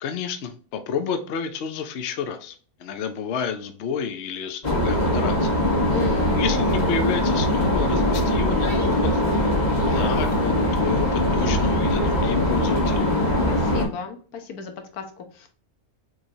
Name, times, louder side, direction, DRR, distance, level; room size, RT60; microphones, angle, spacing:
voice 1, 0.0-5.5 6.3-9.5 9.9-13.1, left 6 dB, 60° left, 8 dB, 0.8 m, -30 dB
sound 1, 4.6-13.9, left 1 dB, 30° left, 1.6 m, -21 dB
voice 2, 5.9-6.4 13.5-15.5, left 6 dB, 80° left, 6 dB, 1.3 m, -35 dB
6.2 x 3.2 x 2.7 m, 0.41 s
omnidirectional pair, 1.6 m